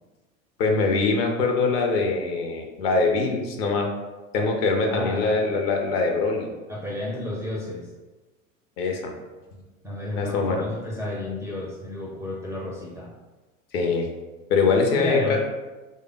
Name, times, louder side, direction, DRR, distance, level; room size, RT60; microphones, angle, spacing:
voice 1, 0.6-3.9 4.3-6.5 8.8-9.1 10.2-10.6 13.7-14.1 14.5-15.4, left 4 dB, 45° left, 3 dB, 0.5 m, -23 dB
voice 2, 4.9-5.5 6.7-7.9 9.8-13.1 14.9-15.4, left 1 dB, 5° right, -5 dB, 0.4 m, -31 dB
3.2 x 2.1 x 3.7 m, 1.2 s
figure-of-eight pair, 80°, 42 cm